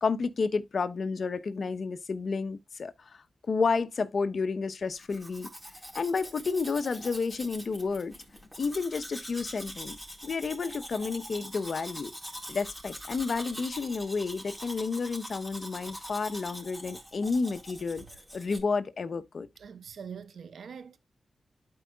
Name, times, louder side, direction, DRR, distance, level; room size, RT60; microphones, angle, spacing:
voice 1, 0.0-5.5 5.9-8.1 8.6-10.0 10.2-12.1 12.5-18.0 18.3-19.5, left 4 dB, 65° left, 0.9 m, -31 dB
Domestic sounds home sounds, 5.0-18.6, equal, 5° right, 4.0 m, -44 dB
voice 2, 19.6-21.0, right 7 dB, 85° right, 0.8 m, -43 dB
12.5 x 4.7 x 2.3 m
cardioid pair, 65°, 0 cm